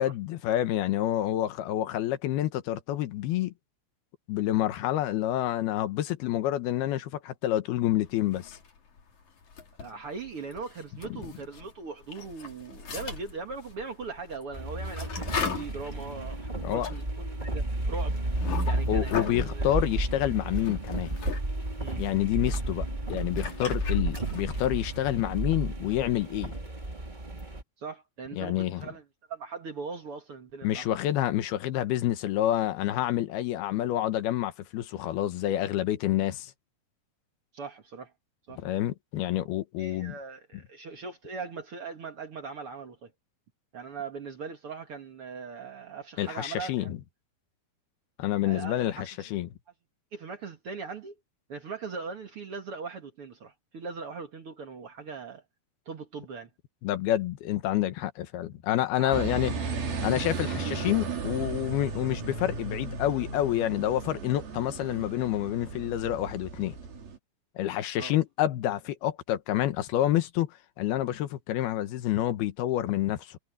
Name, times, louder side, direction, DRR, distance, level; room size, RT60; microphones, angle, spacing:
voice 1, 0.0-3.5 4.3-8.6 11.1-11.2 16.6-16.9 18.9-21.2 22.0-26.5 28.4-28.9 30.6-36.5 38.6-40.1 46.2-47.0 48.2-49.5 56.8-59.6 60.0-66.7 67.6-73.4, left 13 dB, 90° left, 3.2 m, -28 dB
sound 1, 8.3-9.0 9.4-11.7 12.0-19.5 20.2-21.4 21.7-25.1, left 5 dB, 50° left, 4.2 m, -37 dB
voice 2, 9.8-18.2 18.6-19.7 21.8-22.0 27.8-29.0 29.3-30.9 37.5-38.1 38.5-38.6 39.8-43.1 43.7-46.9 48.4-49.2 50.1-51.1 51.5-55.4 55.9-56.5 59.0-59.3 67.9-68.2, right 4 dB, 50° right, 2.0 m, -40 dB
sound 2, 14.5-27.6, right 1 dB, 15° right, 2.0 m, -32 dB
sound 3, 59.1-67.2, right 4 dB, 75° right, 5.8 m, -35 dB
omnidirectional pair, 4.3 m